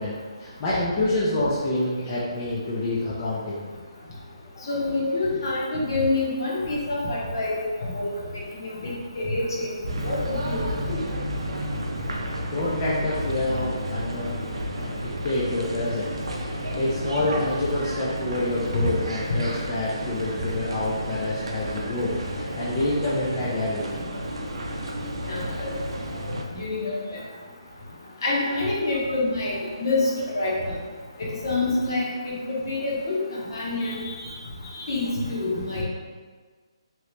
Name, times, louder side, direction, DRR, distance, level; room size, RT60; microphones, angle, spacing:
voice 1, 0.0-3.7 4.5-4.6 12.5-14.4 14.7-16.1 16.4-24.0, left 2 dB, 15° left, -9 dB, 0.3 m, -27 dB
voice 2, 4.7-7.5 7.8-8.1 8.6-9.7 10.0-10.6 10.9-11.0 25.3-25.7 26.5-27.0 28.2-30.8 31.4-34.3 34.7-35.8, left 2 dB, 45° left, -5 dB, 0.9 m, -27 dB
sound 1, 9.9-26.4, equal, 75° right, 0.5 m, -32 dB
2.9 x 2.7 x 3.2 m, 1.5 s
hypercardioid pair, 175°, 3 cm